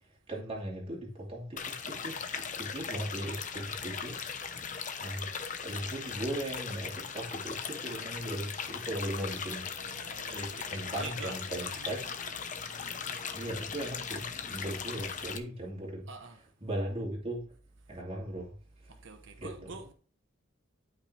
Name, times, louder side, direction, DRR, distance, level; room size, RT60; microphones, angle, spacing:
voice 1, 0.3-4.3 4.6-5.3 5.6-9.7 10.3-12.1 13.3-16.1 16.6-17.5 17.9-18.6 19.4-19.7, right 1 dB, 30° right, 2.7 m, -38 dB
sound 1, 1.6-15.4, left 6 dB, 40° left, 0.9 m, -39 dB
voice 2, 9.7-12.3 16.1-16.4 18.9-19.9, right 4 dB, 65° right, 1.0 m, -47 dB
12.5 x 5.5 x 3.3 m
head